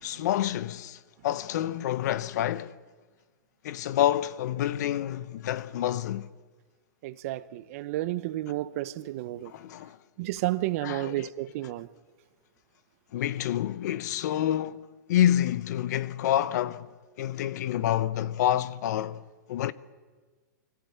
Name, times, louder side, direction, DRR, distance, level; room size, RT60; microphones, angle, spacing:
voice 1, 0.0-2.7 3.6-6.3 9.5-10.0 10.8-11.3 13.1-16.9 17.2-19.2 19.5-19.7, left 11 dB, 60° left, 0.9 m, -28 dB
voice 2, 7.0-9.5 10.2-11.9, right 16 dB, 50° right, 1.0 m, -32 dB
25.0 x 14.5 x 9.4 m
hypercardioid pair, 150°, 10 cm